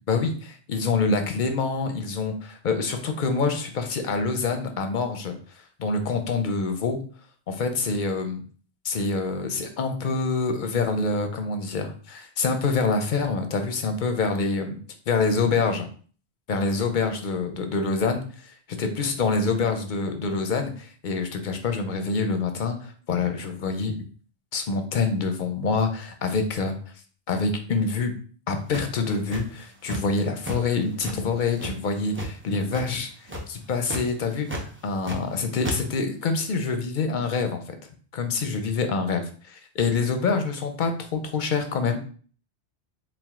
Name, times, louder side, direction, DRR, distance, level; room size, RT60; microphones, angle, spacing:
voice 1, 0.1-5.4 5.8-7.0 7.5-8.4 8.8-14.8 15.1-15.9 16.5-24.0 24.5-26.7 27.3-28.1 28.5-33.1 33.5-37.7 38.1-42.0, left 4 dB, 55° left, 6 dB, 0.7 m, -26 dB
sound 1, 28.7-30.2 30.4-30.6 31.0-32.3 32.7-33.0 33.3-33.5 33.8-34.0 34.5-35.3 35.6-35.8, right 1 dB, 15° right, 0.5 m, -32 dB
4.6 x 2.1 x 3.6 m, 0.42 s
omnidirectional pair, 1.1 m